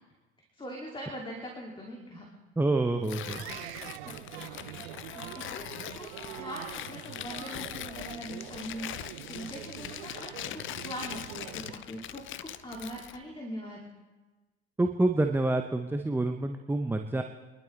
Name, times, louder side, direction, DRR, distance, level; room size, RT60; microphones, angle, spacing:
voice 1, 0.5-2.3 4.0-6.1 6.4-13.8, equal, 15° left, -1 dB, 2.5 m, -42 dB
voice 2, 2.6-3.4 14.8-17.2, right 2 dB, 5° right, 5 dB, 0.8 m, -27 dB
Tearing, 3.0-13.2, left 12 dB, 35° left, 0.6 m, -42 dB
sound 1, 3.2-11.7, right 15 dB, 65° right, 0.7 m, -44 dB
25.5 x 11.5 x 3.3 m, 1.2 s
hypercardioid pair, 70°, 33 cm